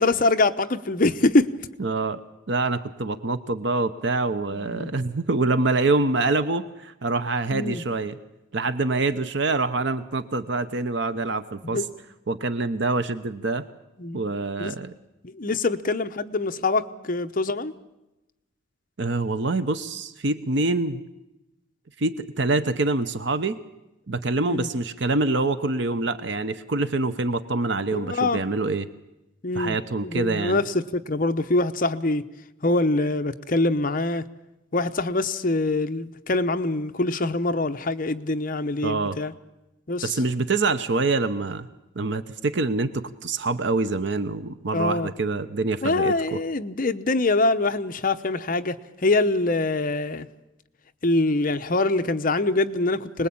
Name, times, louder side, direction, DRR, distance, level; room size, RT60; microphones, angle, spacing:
voice 1, 0.0-1.5 4.5-4.9 7.5-7.8 11.7-11.8 14.0-14.2 14.6-14.7 15.2-17.7 24.5-24.7 27.9-28.4 29.4-29.8 30.0-32.2 32.6-34.2 34.7-39.3 39.9-40.2 44.7-45.1 45.8-50.3 51.0-53.3, left 2 dB, 45° left, 9 dB, 0.9 m, -24 dB
voice 2, 1.8-2.2 2.5-8.2 8.5-11.8 12.3-13.6 14.1-14.9 19.0-21.0 22.0-23.5 24.1-28.9 29.5-30.6 38.8-39.2 40.0-41.7 42.0-46.4, right 3 dB, 60° right, 11 dB, 0.9 m, -25 dB
26.0 x 20.5 x 8.7 m, 0.96 s
head